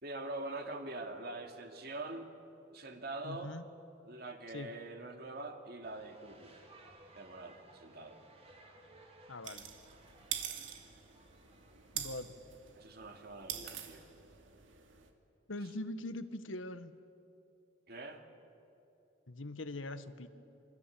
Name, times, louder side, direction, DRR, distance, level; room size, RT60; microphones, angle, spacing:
voice 1, 0.0-2.3 2.7-3.5 4.0-6.5 7.2-8.2 12.8-14.0 17.9-18.2, right 2 dB, 55° right, 5 dB, 2.6 m, -44 dB
voice 2, 3.2-3.7 4.5-4.7 9.3-9.7 11.9-12.3 15.5-17.0 19.3-20.3, left 2 dB, 85° left, 11 dB, 1.4 m, -42 dB
sound 1, 5.8-13.4, right 2 dB, 30° right, 3.2 m, -61 dB
sound 2, 9.4-15.1, right 9 dB, 80° right, 2.5 m, -45 dB
27.0 x 24.5 x 8.6 m, 2.8 s
head